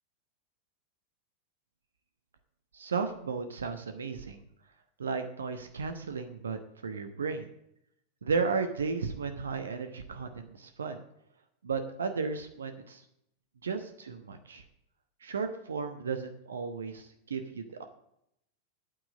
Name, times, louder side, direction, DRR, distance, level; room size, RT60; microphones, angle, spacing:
voice 1, 2.7-4.4 5.0-7.5 8.2-11.0 11.6-13.0 13.6-14.6 15.2-17.8, right 5 dB, 70° right, 8 dB, 1.1 m, -34 dB
9.2 x 9.0 x 7.2 m, 0.76 s
figure-of-eight pair, 90°, 0 cm